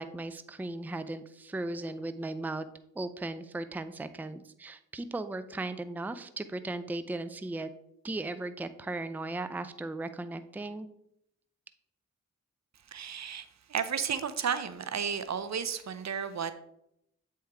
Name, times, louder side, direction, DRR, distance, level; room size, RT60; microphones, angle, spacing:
voice 1, 0.0-2.7 2.9-7.7 8.0-10.9, right 2 dB, 5° right, 11 dB, 0.5 m, -37 dB
voice 2, 12.9-16.5, right 7 dB, 55° right, 12 dB, 0.6 m, -33 dB
8.0 x 4.6 x 3.5 m, 0.77 s
cardioid pair, 40°, 32 cm